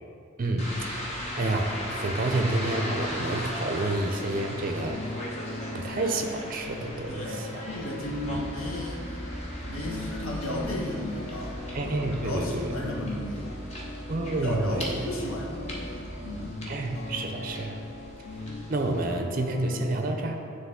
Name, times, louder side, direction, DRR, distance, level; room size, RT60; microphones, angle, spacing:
voice 1, 0.4-0.7 1.4-5.0 5.7-7.6 8.3-8.4 11.7-12.7 14.1-15.1 16.7-17.8 18.7-20.4, right 2 dB, 40° right, 4 dB, 0.5 m, -29 dB
sound 1, 0.6-19.2, left 1 dB, 30° left, 0.9 m, -39 dB
sound 2, 0.8-19.9, left 2 dB, 50° left, 0.6 m, -41 dB
voice 2, 7.1-9.1 9.6-13.6 14.3-16.6, left 1 dB, 85° left, -2 dB, 1.2 m, -34 dB
sound 3, 8.0-16.5, right 1 dB, 15° right, 1.2 m, -41 dB
9.4 x 3.3 x 3.6 m, 2.5 s
head